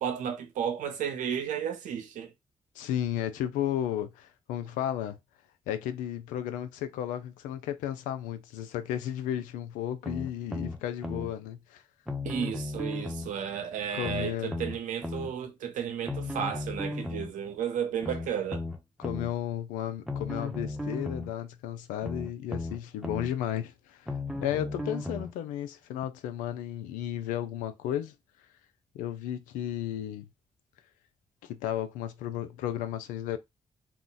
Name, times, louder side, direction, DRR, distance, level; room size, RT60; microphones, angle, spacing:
voice 1, 0.0-2.3 12.2-18.6, right 8 dB, 75° right, 0.6 m, -33 dB
voice 2, 2.8-5.2 5.7-11.8 13.9-14.5 19.0-28.1 28.9-30.3 31.4-33.4, left 11 dB, 90° left, 0.4 m, -34 dB
sound 1, 10.1-11.3 12.1-13.3 14.0-15.3 16.1-17.3 18.0-19.3 20.1-21.3 22.0-23.3 24.1-25.3 26.0-26.1, left 2 dB, 5° right, 0.8 m, -35 dB
2.4 x 2.1 x 3.8 m
supercardioid pair, 45°, 13 cm